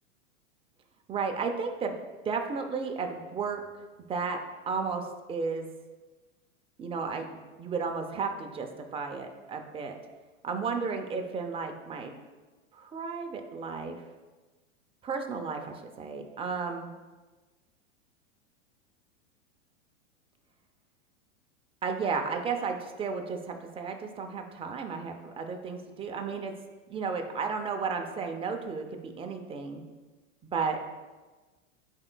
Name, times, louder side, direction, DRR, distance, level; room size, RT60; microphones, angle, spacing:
voice 1, 1.1-2.0 2.2-3.6 4.1-5.7 6.8-7.3 7.6-10.0 10.4-12.1 12.7-14.0 15.0-17.0 21.8-26.5 26.9-29.8 30.5-30.8, right 5 dB, 15° right, 4 dB, 0.5 m, -33 dB
10.5 x 4.5 x 2.2 m, 1.3 s
hypercardioid pair, 115°, 39 cm